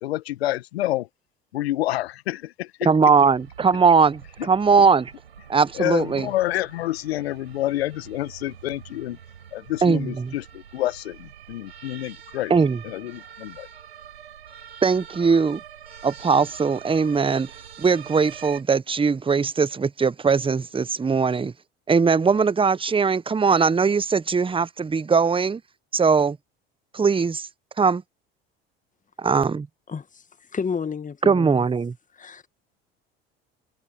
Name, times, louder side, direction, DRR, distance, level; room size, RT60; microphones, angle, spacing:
voice 1, 0.0-1.1 1.5-2.9 4.4-4.5 5.7-9.2 9.5-12.6 12.8-13.7, left 15 dB, 80° left, 1.7 m, -28 dB
voice 2, 2.8-5.1 5.5-6.3 9.8-10.3 12.5-12.8 14.8-15.6 16.0-17.5 17.8-21.5 21.9-25.6 25.9-26.4 26.9-27.5 27.8-28.0 29.2-29.7 31.2-31.9, right 5 dB, 15° right, 0.9 m, -20 dB
sound 1, 3.1-18.6, right 8 dB, 90° right, 4.2 m, -45 dB
voice 3, 29.9-30.2 30.5-31.6 32.2-32.4, left 6 dB, 25° left, 1.9 m, -31 dB
hypercardioid pair, 65°, 31 cm